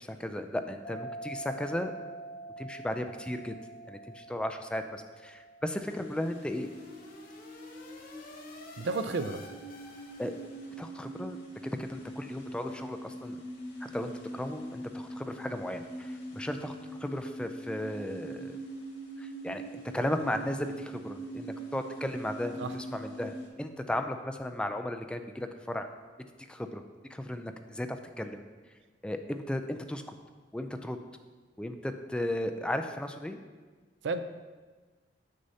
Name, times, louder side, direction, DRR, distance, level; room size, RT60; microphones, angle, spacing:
voice 1, 0.0-1.9 2.6-3.5 3.9-6.7 10.2-10.3 10.8-13.4 13.8-18.6 19.2-19.6 19.9-25.9 26.5-26.8 27.1-28.4 29.0-30.0 30.5-31.0 31.6-33.4, left 1 dB, 5° left, 6 dB, 0.3 m, -35 dB
sound 1, 0.8-7.9, right 2 dB, 20° left, 1.2 m, -46 dB
sound 2, 5.7-10.7, left 2 dB, 55° left, 0.8 m, -51 dB
sound 3, 5.8-23.5, right 1 dB, 90° left, 1.8 m, -43 dB
voice 2, 8.8-9.4 22.6-22.8 34.0-34.2, right 3 dB, 85° right, 9 dB, 0.4 m, -31 dB
8.1 x 6.4 x 2.7 m, 1.4 s
head